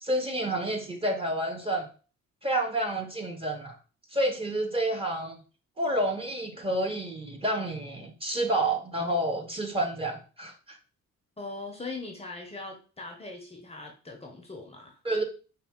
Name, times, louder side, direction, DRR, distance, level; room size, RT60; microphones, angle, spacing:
voice 1, 0.0-1.9 2.4-3.8 4.1-5.4 5.8-10.8 15.0-15.2, right 1 dB, 20° right, 3 dB, 0.9 m, -29 dB
voice 2, 11.4-15.0, left 3 dB, 20° left, 2 dB, 0.7 m, -40 dB
4.2 x 2.3 x 3.6 m, 0.37 s
cardioid pair, 90°, 30 cm